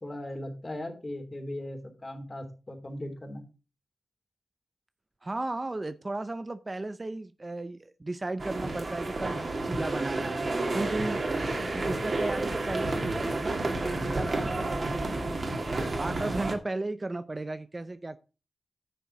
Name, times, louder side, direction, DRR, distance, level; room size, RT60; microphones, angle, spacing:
voice 1, 0.0-3.4, left 1 dB, 30° left, 3.2 m, -38 dB
voice 2, 5.2-10.4 10.7-11.2 11.9-15.4 16.0-18.2, right 2 dB, 30° right, 0.6 m, -35 dB
sound 1, 8.4-16.6, right 2 dB, 50° right, 2.4 m, -30 dB
10.0 x 6.8 x 4.7 m
wide cardioid pair, 80°, 0 cm